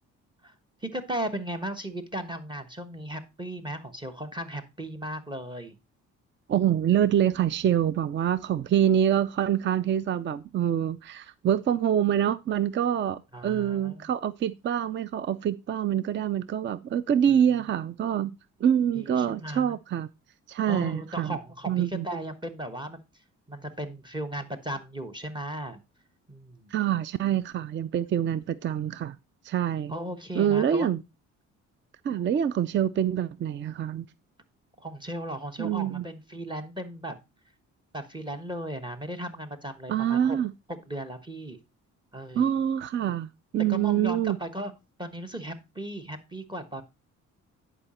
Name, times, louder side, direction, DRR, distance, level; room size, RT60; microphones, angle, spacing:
voice 1, 0.8-5.7 13.3-14.1 17.3-17.6 18.9-19.8 20.7-23.2 23.5-25.8 26.3-26.7 29.9-30.9 34.8-37.2 37.9-40.4 40.7-41.6 42.1-42.5 43.7-44.7 45.0-46.8, right 1 dB, 15° right, 1.2 m, -36 dB
voice 2, 6.5-18.3 18.6-20.1 20.5-21.4 21.7-22.1 26.7-29.2 29.4-29.9 30.4-31.0 32.0-34.1 35.6-36.0 39.9-40.5 42.3-43.3 43.5-44.4, right 9 dB, 40° right, 0.5 m, -25 dB
10.0 x 5.0 x 4.2 m
cardioid pair, 90°, 30 cm